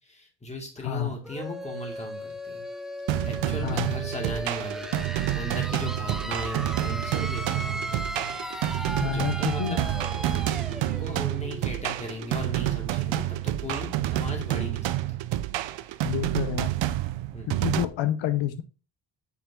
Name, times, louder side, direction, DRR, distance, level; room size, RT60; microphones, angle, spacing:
voice 1, 0.0-2.6 3.2-9.8 10.7-15.2 15.8-16.0 17.3-17.7, left 1 dB, 15° left, 1 dB, 2.0 m, -37 dB
sound 1, 1.2-12.8, equal, ahead, 0.4 m, -37 dB
sound 2, 3.1-17.9, right 14 dB, 75° right, 0.6 m, -29 dB
voice 2, 9.0-9.8 16.0-16.7 17.6-18.6, left 11 dB, 80° left, 10 dB, 0.8 m, -28 dB
8.5 x 4.4 x 3.7 m, 0.33 s
cardioid pair, 155°, 45 cm